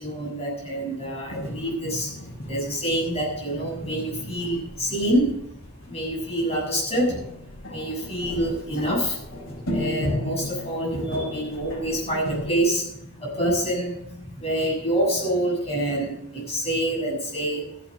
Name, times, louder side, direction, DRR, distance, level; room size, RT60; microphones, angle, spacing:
voice 1, 0.0-7.3 7.7-17.7, right 1 dB, 30° left, -3 dB, 7.3 m, -27 dB
sound 1, 1.0-12.6, left 1 dB, 75° left, 5.1 m, -35 dB
14.0 x 9.3 x 6.8 m, 0.74 s
head